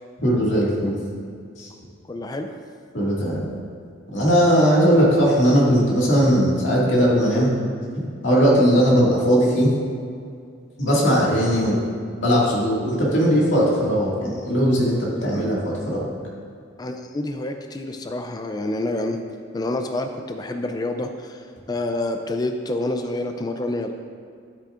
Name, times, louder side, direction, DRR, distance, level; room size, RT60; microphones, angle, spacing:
voice 1, 0.2-0.9 1.6-1.7 2.9-3.4 4.1-7.5 8.2-9.7 10.8-11.8 12.2-15.0 15.2-16.0, equal, 70° left, -5 dB, 2.0 m, -18 dB
voice 2, 2.0-2.6 16.8-19.2 19.5-23.9, left 2 dB, 20° left, 5 dB, 0.3 m, -28 dB
10.5 x 8.5 x 2.5 m, 2.3 s
head